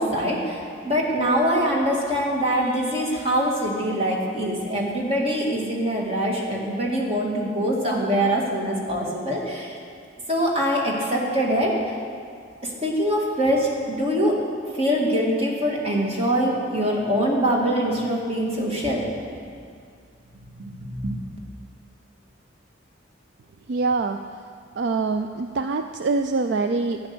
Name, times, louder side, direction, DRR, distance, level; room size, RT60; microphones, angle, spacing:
voice 1, 0.0-9.8 10.3-12.0 12.6-14.4 14.8-19.1 20.5-21.2, equal, 30° right, -2 dB, 2.1 m, -24 dB
voice 2, 23.7-24.4 24.8-27.0, right 3 dB, 60° right, 7 dB, 0.4 m, -24 dB
12.5 x 9.5 x 6.8 m, 2.2 s
head